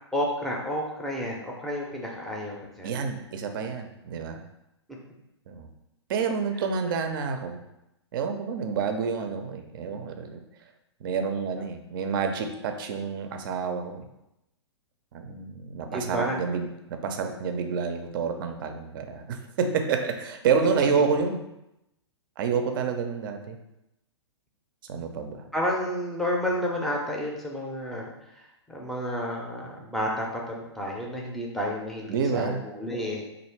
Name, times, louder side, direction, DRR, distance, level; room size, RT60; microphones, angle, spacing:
voice 1, 0.1-2.9 15.9-16.4 20.8-20.9 25.5-28.1 28.7-33.2, equal, ahead, -2 dB, 0.6 m, -30 dB
voice 2, 2.8-4.4 5.5-5.7 6.1-7.6 8.1-10.4 11.0-14.0 15.1-21.5 22.4-23.6 24.9-25.5 32.1-32.6, right 5 dB, 45° right, 6 dB, 0.5 m, -28 dB
3.1 x 2.6 x 4.4 m, 0.88 s
figure-of-eight pair, 115°, 15 cm